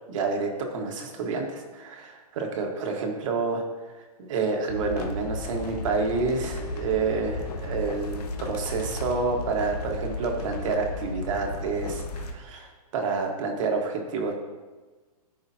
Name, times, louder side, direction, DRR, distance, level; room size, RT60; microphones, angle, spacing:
voice 1, 0.1-3.6 3.9-14.3, right 4 dB, 55° right, 2 dB, 1.6 m, -29 dB
sound 1, 4.7-12.3, left 2 dB, 80° left, 1.1 m, -34 dB
13.0 x 4.9 x 2.8 m, 1.3 s
hypercardioid pair, 150°, 20 cm